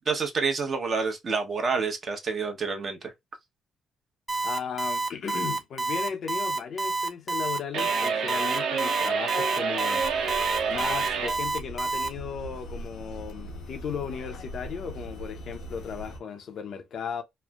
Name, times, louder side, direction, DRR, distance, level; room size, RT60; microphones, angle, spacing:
voice 1, 0.1-3.1, right 4 dB, 45° right, 0.8 m, -28 dB
Alarm, 4.3-12.1, right 2 dB, 15° right, 0.5 m, -28 dB
voice 2, 4.4-10.1 10.7-17.2, left 7 dB, 60° left, 0.6 m, -36 dB
sound 1, 7.7-11.4, right 6 dB, 80° right, 0.7 m, -28 dB
sound 2, 10.0-16.2, equal, 85° left, 0.9 m, -41 dB
3.1 x 2.0 x 2.3 m
cardioid pair, 90°, 0 cm